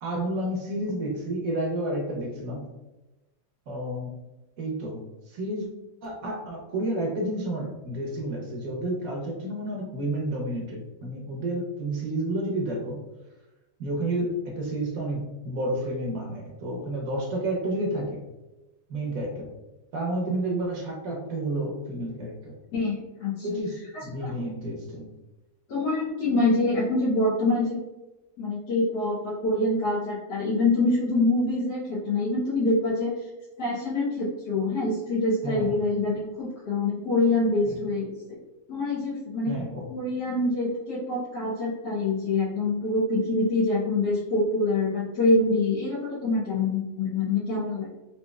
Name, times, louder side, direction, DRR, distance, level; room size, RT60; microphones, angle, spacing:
voice 1, 0.0-2.7 3.7-4.1 4.6-5.0 5.3-5.7 6.0-13.0 13.8-18.2 18.9-19.5 19.9-22.5 23.4-25.1 35.4-35.7 37.6-37.8 39.5-39.8, right 1 dB, 65° right, -1 dB, 1.2 m, -30 dB
voice 2, 22.7-23.5 23.9-24.3 25.7-27.8 28.4-33.3 33.6-38.1 38.7-39.6 39.9-47.9, left 2 dB, 85° left, -8 dB, 1.4 m, -25 dB
4.1 x 2.7 x 2.3 m, 1.1 s
omnidirectional pair, 1.7 m